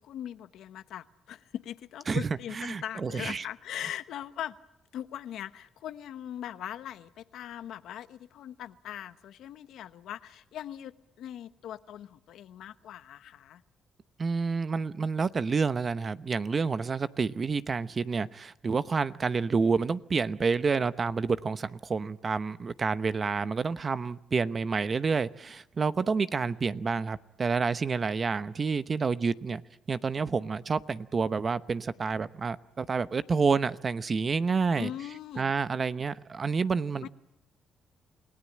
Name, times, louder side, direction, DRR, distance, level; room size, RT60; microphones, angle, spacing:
voice 1, 0.0-4.6 4.9-13.6 34.8-35.5 37.0-37.1, left 11 dB, 80° left, 1.0 m, -40 dB
voice 2, 2.5-3.4 14.2-29.6 29.9-34.9 35.4-37.1, right 5 dB, 40° right, 0.9 m, -29 dB
28.5 x 18.0 x 8.7 m
cardioid pair, 90°, 0 cm